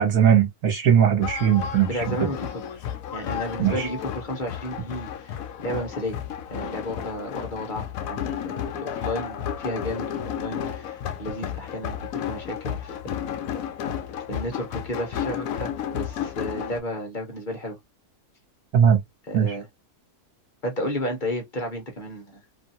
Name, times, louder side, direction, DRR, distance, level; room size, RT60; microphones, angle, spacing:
voice 1, 0.0-1.9 2.2-2.3 3.6-3.9 18.7-19.0 19.3-19.5, right 8 dB, 70° right, 1.6 m, -19 dB
sound 1, 1.2-16.8, left 9 dB, 70° left, 1.0 m, -32 dB
voice 2, 1.9-2.8 3.1-6.2 6.5-13.0 14.3-17.8 19.3-19.7 20.6-22.4, equal, 35° left, 1.0 m, -32 dB
3.0 x 2.6 x 2.6 m
omnidirectional pair, 1.6 m